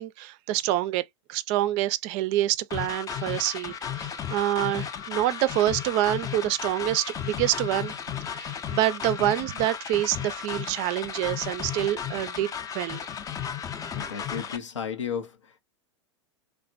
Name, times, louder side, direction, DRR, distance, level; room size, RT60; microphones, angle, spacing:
voice 1, 0.0-7.9 8.3-13.0, right 14 dB, 45° right, 0.4 m, -27 dB
sound 1, 2.7-14.6, left 8 dB, 20° left, 0.5 m, -34 dB
voice 2, 13.9-15.6, left 7 dB, 90° left, 0.6 m, -34 dB
3.3 x 2.1 x 2.5 m
hypercardioid pair, 100°, 16 cm